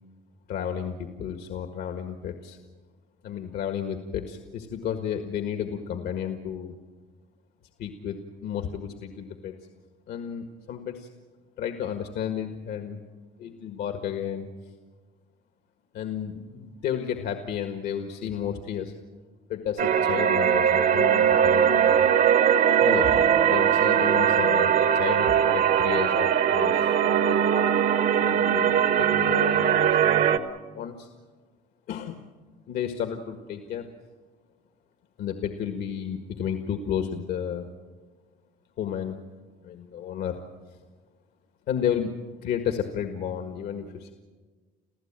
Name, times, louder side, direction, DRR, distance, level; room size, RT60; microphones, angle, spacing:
voice 1, 0.5-2.6 3.2-6.8 7.8-9.5 10.1-11.1 11.6-13.0 13.4-14.7 15.9-18.9 19.5-22.1 22.8-27.5 28.2-30.3 30.7-31.1 31.9-32.3 32.7-33.9 35.2-37.7 38.8-39.2 39.6-40.4 40.7-40.8 41.7-44.1, left 8 dB, 75° left, 6 dB, 1.7 m, -32 dB
sound 1, 19.8-30.4, right 9 dB, 65° right, 1.5 m, -21 dB
29.0 x 15.0 x 8.9 m, 1.4 s
cardioid pair, 110°, 17 cm